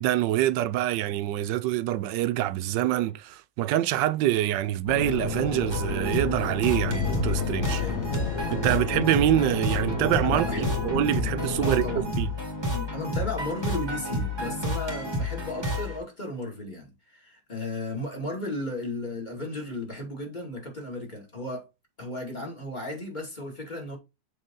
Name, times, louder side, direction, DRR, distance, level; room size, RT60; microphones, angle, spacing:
voice 1, 0.0-7.8 8.5-10.5 10.8-11.9 12.2-12.3, right 13 dB, 90° right, 1.2 m, -25 dB
sound 1, 4.9-12.0, left 6 dB, 55° left, 1.3 m, -31 dB
sound 2, 5.7-16.0, left 1 dB, 15° right, 2.2 m, -30 dB
voice 2, 7.7-8.1 8.6-8.9 10.2-10.8 11.6-12.1 12.7-21.7 22.0-24.0, left 1 dB, 25° left, 2.5 m, -35 dB
7.7 x 3.8 x 3.8 m
omnidirectional pair, 1.9 m